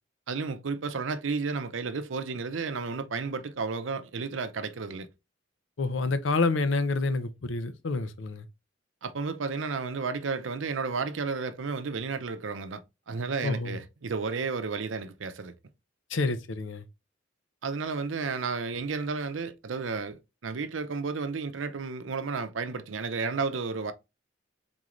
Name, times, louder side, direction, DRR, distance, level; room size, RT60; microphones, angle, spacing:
voice 1, 0.3-5.1 9.0-12.8 13.1-15.5 17.6-23.9, right 4 dB, 90° right, 0.6 m, -32 dB
voice 2, 5.8-8.5 13.4-13.8 16.1-16.9, left 3 dB, 85° left, 0.6 m, -28 dB
3.9 x 3.8 x 3.0 m
head